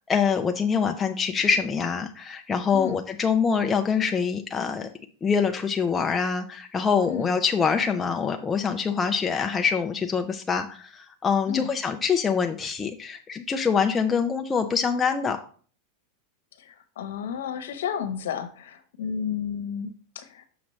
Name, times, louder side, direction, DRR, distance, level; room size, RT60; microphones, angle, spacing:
voice 1, 0.1-4.9 5.2-15.4, left 6 dB, 15° left, 4 dB, 0.5 m, -25 dB
voice 2, 16.6-20.4, left 8 dB, 85° left, 9 dB, 0.9 m, -32 dB
6.2 x 5.9 x 3.1 m, 0.44 s
supercardioid pair, 140°, 0 cm